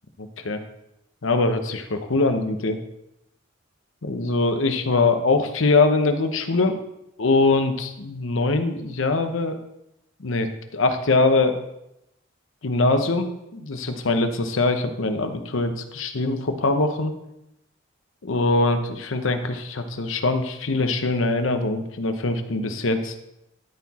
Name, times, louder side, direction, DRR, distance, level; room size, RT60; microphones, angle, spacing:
voice 1, 0.2-0.6 1.2-2.8 4.0-6.8 7.2-9.6 10.2-11.6 12.6-17.1 18.2-23.1, left 3 dB, 80° left, 7 dB, 0.9 m, -22 dB
13.0 x 4.7 x 4.2 m, 0.85 s
head